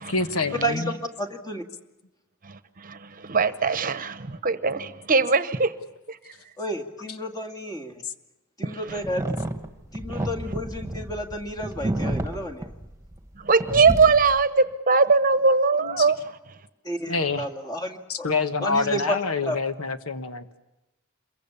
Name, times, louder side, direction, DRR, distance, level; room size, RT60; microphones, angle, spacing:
voice 1, 0.1-0.9 15.8-16.1 17.1-17.4 18.1-20.5, left 4 dB, 80° left, 1.3 m, -27 dB
voice 2, 0.6-1.6 6.6-7.9 8.6-9.4 9.9-12.7 16.8-18.3 18.6-19.2 19.4-19.6, equal, 20° left, 2.1 m, -31 dB
voice 3, 2.4-5.8 6.1-6.2 8.6-9.0 10.1-10.3 13.4-16.2, right 4 dB, 40° right, 1.0 m, -21 dB
sound 1, 9.0-13.4 13.6-14.4, right 1 dB, 15° right, 1.6 m, -30 dB
27.0 x 23.0 x 7.1 m
head